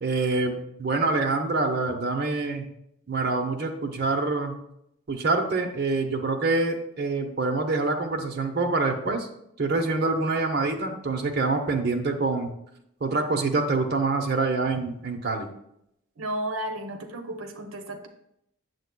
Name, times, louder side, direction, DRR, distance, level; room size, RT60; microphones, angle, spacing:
voice 1, 0.0-2.7 3.1-4.6 5.1-9.3 9.6-12.5 13.0-15.5, right 3 dB, 50° right, 2 dB, 0.7 m, -26 dB
voice 2, 16.2-18.1, right 1 dB, 85° right, 6 dB, 0.7 m, -33 dB
8.0 x 7.0 x 2.2 m, 0.76 s
head